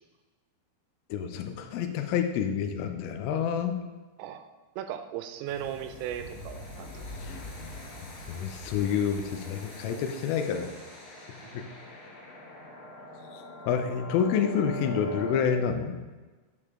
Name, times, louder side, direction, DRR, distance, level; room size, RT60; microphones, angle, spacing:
voice 1, 1.1-3.8 7.2-7.4 8.3-10.7 11.5-11.7 13.3-13.4 13.7-15.9, left 7 dB, 80° left, 6 dB, 3.2 m, -28 dB
voice 2, 4.8-7.0 11.4-11.8, right 10 dB, 85° right, 8 dB, 3.1 m, -37 dB
sound 1, 5.5-15.4, left 2 dB, 65° left, 4.2 m, -43 dB
8.3 x 6.8 x 3.6 m, 1.3 s
omnidirectional pair, 6.0 m